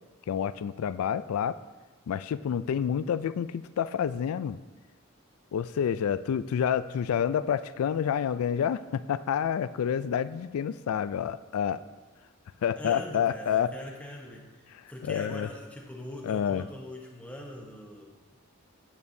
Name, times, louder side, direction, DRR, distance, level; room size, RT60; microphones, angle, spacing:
voice 1, 0.3-1.6 2.1-4.6 5.5-11.8 12.6-13.7 15.0-15.5 16.2-16.7, left 8 dB, 85° left, 16 dB, 0.3 m, -28 dB
voice 2, 12.8-18.4, left 1 dB, 5° left, -1 dB, 0.9 m, -42 dB
9.4 x 8.5 x 2.7 m, 1.3 s
head